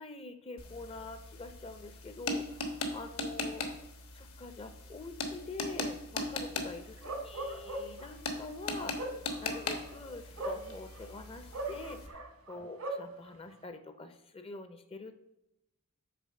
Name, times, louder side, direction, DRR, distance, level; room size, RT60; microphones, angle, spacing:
voice 1, 0.0-3.8 4.1-9.1 9.4-15.1, left 3 dB, 25° left, 9 dB, 0.5 m, -46 dB
sound 1, 0.6-12.1, left 2 dB, 70° left, 1.1 m, -40 dB
Bark, 7.0-8.1 8.7-11.1 11.5-13.1, right 2 dB, 85° right, 1.4 m, -39 dB
6.8 x 4.1 x 6.4 m, 0.87 s
head